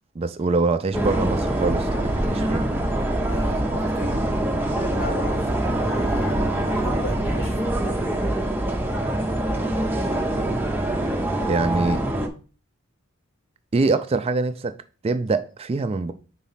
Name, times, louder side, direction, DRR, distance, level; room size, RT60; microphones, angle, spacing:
voice 1, 0.2-2.7 9.6-9.9 10.3-10.6 11.4-12.0 13.7-14.7 15.0-16.1, right 3 dB, 30° right, 0.3 m, -24 dB
sound 1, 0.9-12.3, right 1 dB, 10° right, 0.7 m, -24 dB
voice 2, 3.3-4.2 4.9-8.1, left 1 dB, 45° left, 1.6 m, -36 dB
5.0 x 4.1 x 5.6 m
head